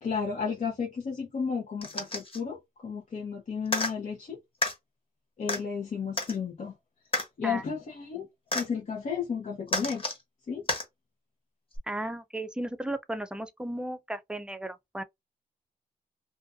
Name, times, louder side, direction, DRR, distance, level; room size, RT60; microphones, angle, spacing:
voice 1, 0.0-4.4 5.4-6.7 7.4-8.3 8.5-10.2 10.5-10.6, left 6 dB, 55° left, 0.7 m, -33 dB
sound 1, 1.8-2.4 3.7-3.9 4.6-4.7 5.5-5.6 6.2-6.4 7.1-7.3 8.5-8.7 9.7-10.2 10.7-10.8 11.8-11.9, left 2 dB, 40° left, 1.2 m, -30 dB
voice 2, 11.9-15.0, right 1 dB, 5° right, 0.4 m, -35 dB
2.4 x 2.3 x 2.4 m
cardioid pair, 90°, 15 cm